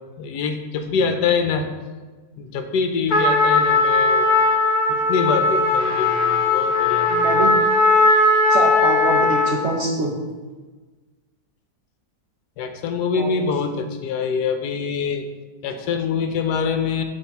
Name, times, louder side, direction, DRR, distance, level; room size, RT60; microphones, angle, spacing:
voice 1, 0.2-1.7 2.4-4.3 4.9-7.5 12.6-15.3 15.6-17.0, left 5 dB, 75° left, 7 dB, 1.2 m, -25 dB
Trumpet, 3.1-9.7, left 2 dB, 25° left, 1.5 m, -18 dB
voice 2, 7.1-7.6 8.5-10.1 13.2-13.3 13.6-13.7, right 3 dB, 55° right, 0 dB, 0.8 m, -24 dB
7.3 x 3.5 x 5.7 m, 1.3 s
omnidirectional pair, 1.9 m